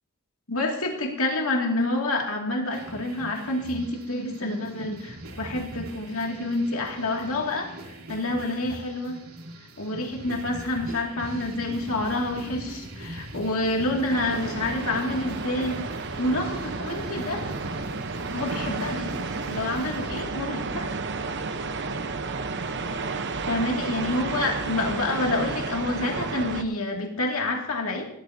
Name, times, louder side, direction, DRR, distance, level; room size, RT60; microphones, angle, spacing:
voice 1, 0.5-9.2 9.8-17.5 18.3-20.9 23.5-28.1, left 2 dB, 75° left, 1 dB, 2.5 m, -28 dB
sound 1, 2.7-20.2, right 1 dB, 75° right, 3.1 m, -40 dB
sound 2, 14.1-26.6, right 4 dB, 55° right, 1.0 m, -32 dB
17.0 x 12.5 x 2.8 m, 0.82 s
head